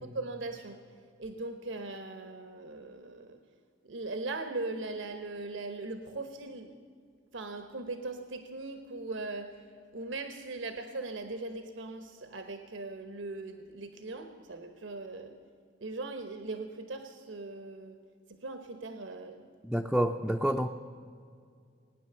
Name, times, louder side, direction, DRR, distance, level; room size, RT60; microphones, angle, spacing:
voice 1, 0.0-0.8 1.2-3.4 3.9-6.7 7.3-9.6 9.9-15.4 15.8-18.0 18.3-19.4, right 2 dB, 80° right, 8 dB, 1.0 m, -39 dB
voice 2, 19.6-20.7, right 1 dB, ahead, 2 dB, 0.4 m, -28 dB
18.5 x 9.9 x 6.8 m, 2.2 s
head